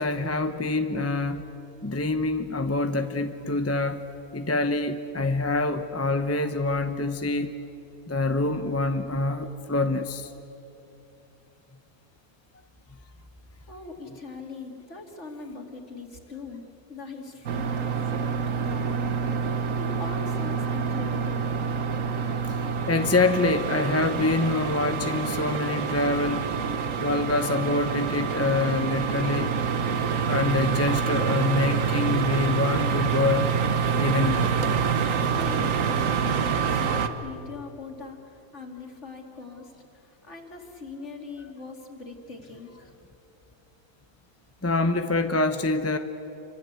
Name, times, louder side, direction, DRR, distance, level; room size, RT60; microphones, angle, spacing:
voice 1, 0.0-1.4 1.8-4.0 4.3-7.5 8.1-10.3 22.5-22.6 22.9-26.5 27.0-29.5 30.3-33.5 34.0-34.6 44.6-46.0, left 2 dB, 10° left, 8 dB, 0.8 m, -25 dB
voice 2, 13.7-16.6 16.9-21.5 35.3-42.9, left 3 dB, 50° left, 3 dB, 3.0 m, -41 dB
sound 1, 17.5-37.1, right 6 dB, 60° right, 1.5 m, -27 dB
27.5 x 25.5 x 8.3 m, 2.9 s
omnidirectional pair, 1.6 m